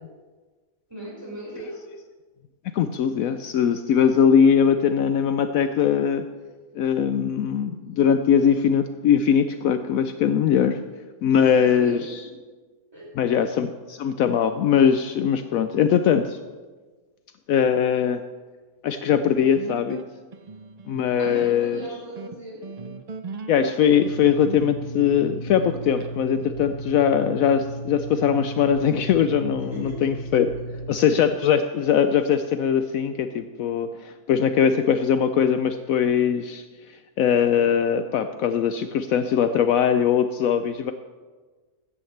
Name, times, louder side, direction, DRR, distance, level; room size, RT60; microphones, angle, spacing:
voice 1, 0.9-1.9 11.3-12.3 12.9-13.3 21.2-22.7 29.7-30.1 30.4-30.5, right 1 dB, 15° right, -5 dB, 4.9 m, -38 dB
voice 2, 2.7-6.2 6.7-10.8 11.2-12.2 13.2-16.4 17.5-18.2 18.8-20.0 20.9-21.8 23.5-30.5 30.9-36.6 37.2-40.9, left 8 dB, 70° left, 9 dB, 0.9 m, -21 dB
sound 1, 19.1-26.1, right 4 dB, 70° right, 0.3 m, -38 dB
sound 2, 23.9-30.9, right 2 dB, 85° right, 5.8 m, -36 dB
16.0 x 13.0 x 3.3 m, 1.4 s
omnidirectional pair, 1.6 m